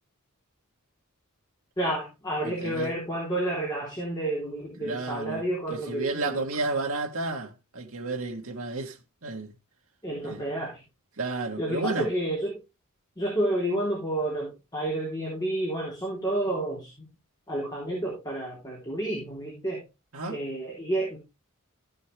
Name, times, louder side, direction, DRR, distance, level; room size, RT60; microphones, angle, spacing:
voice 1, 1.8-6.4 10.0-10.8 11.6-12.6 13.2-16.9 17.5-19.8 20.3-21.2, right 1 dB, 20° left, 3.8 m, -30 dB
voice 2, 2.4-2.9 4.8-5.4 5.7-9.0 9.2-9.5 10.2-10.4 11.2-12.1 20.1-20.4, right 3 dB, 65° right, 1.6 m, -31 dB
14.5 x 6.7 x 3.3 m
head